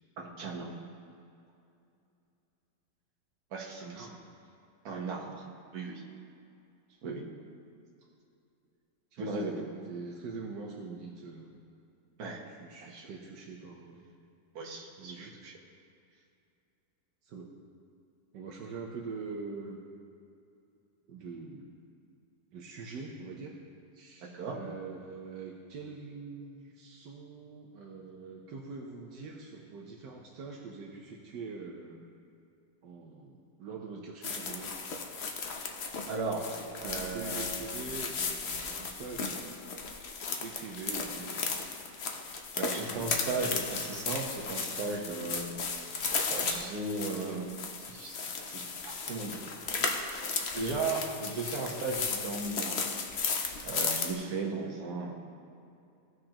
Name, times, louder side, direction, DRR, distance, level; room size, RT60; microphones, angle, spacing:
voice 1, 0.2-0.7 3.5-4.1 4.8-5.5 5.7-6.0 7.0-7.2 9.2-9.5 12.2-12.4 12.8-13.1 14.5-15.5 24.2-24.6 36.1-36.4 36.8-37.6 42.5-45.4 46.3-47.5 47.9-48.2 48.4-49.4 50.5-52.8 53.6-55.1, right 3 dB, 65° right, -1 dB, 1.6 m, -36 dB
voice 2, 3.8-4.2 6.9-7.0 9.1-11.7 12.5-14.0 15.0-15.4 17.2-17.5 18.3-19.8 21.1-21.7 22.5-23.6 23.9-32.1 32.8-34.7 36.8-39.4 40.4-41.5 42.6-43.9 54.6-54.7, right 4 dB, 80° right, -1 dB, 1.4 m, -44 dB
sound 1, 34.2-54.1, left 5 dB, 50° left, 0.8 m, -35 dB
17.0 x 6.3 x 2.9 m, 2.6 s
omnidirectional pair, 1.9 m